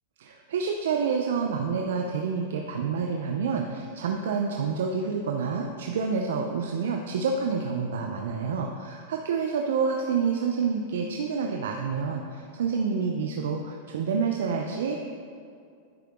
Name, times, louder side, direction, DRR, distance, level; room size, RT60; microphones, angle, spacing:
voice 1, 0.2-15.0, right 5 dB, 85° right, 2 dB, 0.5 m, -28 dB
10.5 x 4.7 x 3.6 m, 2.4 s
supercardioid pair, 135°, 0 cm